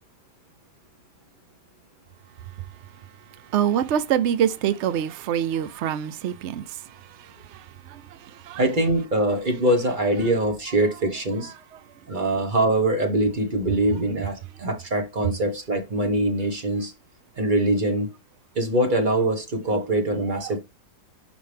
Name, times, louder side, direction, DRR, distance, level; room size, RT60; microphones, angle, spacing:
voice 1, 3.5-6.8 7.2-8.6 20.3-20.5, right 9 dB, 85° right, 0.6 m, -26 dB
voice 2, 8.6-11.5 12.1-16.9 17.4-18.1 18.5-20.6, right 1 dB, 30° right, 1.1 m, -23 dB
6.0 x 5.2 x 3.4 m
omnidirectional pair, 1.9 m